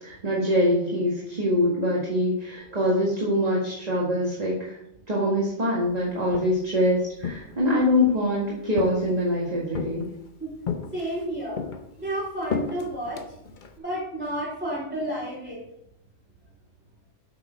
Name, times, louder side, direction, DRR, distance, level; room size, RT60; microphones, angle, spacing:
voice 1, 0.0-4.7 5.1-10.0, left 1 dB, 30° right, -4 dB, 1.8 m, -24 dB
Walk footsteps, 6.1-6.7 7.2-8.2 8.8-9.3 9.8-10.3 10.7-11.3 11.6-13.8, left 6 dB, 45° left, 0.8 m, -34 dB
voice 2, 10.9-11.6 12.0-13.4 13.8-15.6, right 1 dB, 5° right, -6 dB, 3.7 m, -31 dB
8.3 x 6.1 x 5.1 m, 0.79 s
omnidirectional pair, 1.4 m